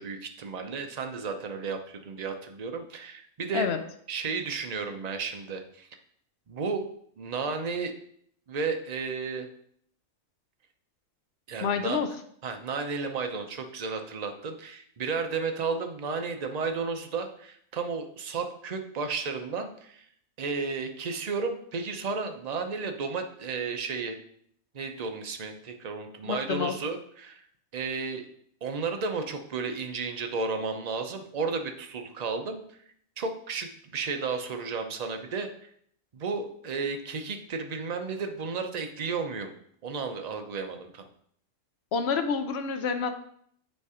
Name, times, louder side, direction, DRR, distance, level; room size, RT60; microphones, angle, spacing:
voice 1, 0.0-3.7 4.1-5.9 6.5-6.9 7.2-7.9 8.5-9.5 11.5-12.0 12.4-20.0 20.4-24.2 24.7-27.4 27.7-28.3 28.6-32.6 33.2-35.5 36.1-39.5 39.8-41.1, right 4 dB, 45° right, 6 dB, 0.6 m, -33 dB
voice 2, 11.6-12.1 26.3-26.7 41.9-43.1, left 5 dB, 60° left, 7 dB, 0.8 m, -28 dB
8.1 x 3.3 x 4.9 m, 0.65 s
omnidirectional pair, 1.4 m